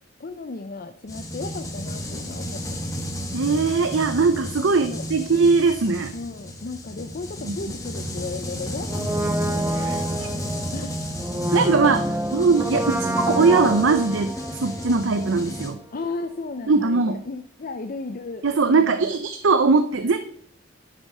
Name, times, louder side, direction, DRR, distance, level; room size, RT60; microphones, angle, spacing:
voice 1, 0.2-2.9 4.6-5.1 6.1-9.3 10.7-11.0 12.7-12.8 15.9-18.9, left 3 dB, 45° left, 8 dB, 0.5 m, -35 dB
sound 1, 1.1-15.7, equal, 20° left, 1.8 m, -32 dB
voice 2, 3.3-6.1 7.4-7.6 9.7-10.3 11.5-12.9 13.3-15.8 16.7-17.2 18.4-20.2, right 4 dB, 70° right, 9 dB, 0.6 m, -20 dB
Brass instrument, 8.8-15.7 16.0-16.1, right 1 dB, 10° right, 0.5 m, -28 dB
11.5 x 6.4 x 5.5 m, 0.63 s
head